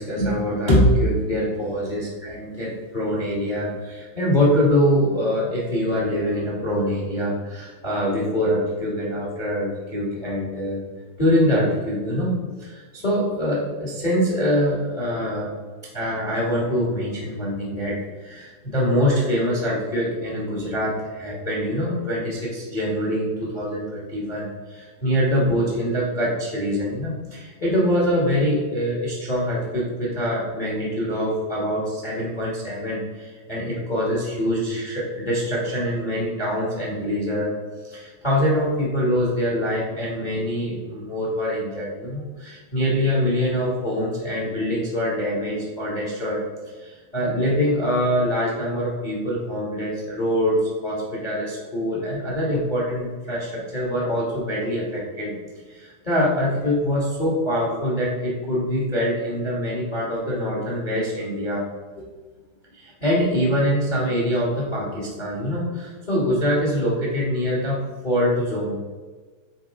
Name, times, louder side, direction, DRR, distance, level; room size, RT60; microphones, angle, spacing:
voice 1, 0.0-2.0 2.3-10.8 11.2-12.3 12.6-15.5 15.9-37.5 37.8-46.4 46.7-55.3 55.7-61.7 62.0-62.1 62.7-68.8, equal, 45° left, -4 dB, 0.6 m, -24 dB
9.3 x 4.3 x 3.6 m, 1.4 s
omnidirectional pair, 3.7 m